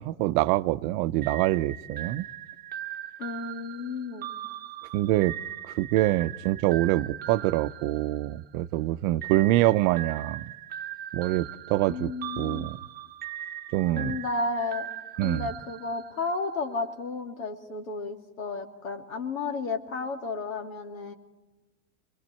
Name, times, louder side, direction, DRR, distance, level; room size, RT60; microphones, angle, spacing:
voice 1, 0.0-2.3 4.9-5.3 5.6-10.4 11.1-12.8 13.7-14.2 15.2-15.5, right 16 dB, 50° right, 0.7 m, -25 dB
sound 1, 1.2-8.6 9.2-16.5, right 11 dB, 25° right, 1.1 m, -40 dB
voice 2, 3.2-4.3 11.9-12.7 14.0-14.9 15.2-21.1, left 3 dB, 85° left, 2.6 m, -33 dB
29.5 x 22.0 x 4.4 m
hypercardioid pair, 115°, 40 cm